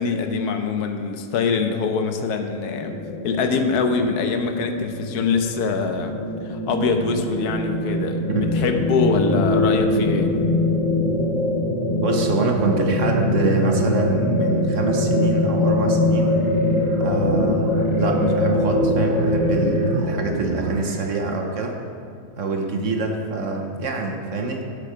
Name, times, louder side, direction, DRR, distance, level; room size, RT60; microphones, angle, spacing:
voice 1, 0.0-2.9 3.2-6.2 6.4-10.4, left 5 dB, 75° left, 6 dB, 1.2 m, -24 dB
sound 1, 2.7-19.9, left 1 dB, 20° left, 1.1 m, -22 dB
voice 2, 12.0-16.3 17.0-21.8 22.4-24.6, right 3 dB, 55° right, 2 dB, 1.1 m, -25 dB
sound 2, 16.2-21.2, right 1 dB, 85° right, 1.7 m, -35 dB
8.3 x 7.4 x 5.8 m, 2.4 s
omnidirectional pair, 1.7 m